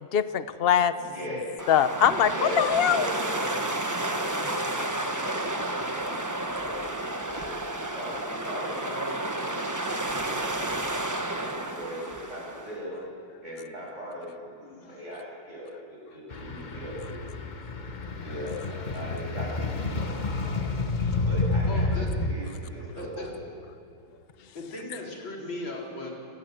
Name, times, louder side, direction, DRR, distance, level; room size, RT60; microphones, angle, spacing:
voice 1, 0.1-0.9 1.7-3.1, left 9 dB, 60° left, 0.6 m, -22 dB
voice 2, 1.0-1.4 2.2-2.6 2.9-3.6 4.0-10.7 11.3-13.0 13.4-17.1 18.2-20.1 20.4-20.7 21.2-21.9 22.2-23.6, equal, 35° right, 8.3 m, -39 dB
sound 1, 1.6-12.8, right 1 dB, 15° right, 0.7 m, -31 dB
voice 3, 14.6-15.1 21.7-22.1 23.0-23.3 24.5-26.1, left 2 dB, 90° left, 4.8 m, -38 dB
sound 2, 16.3-22.3, left 3 dB, 30° left, 0.9 m, -29 dB
27.0 x 19.0 x 7.8 m
omnidirectional pair, 2.1 m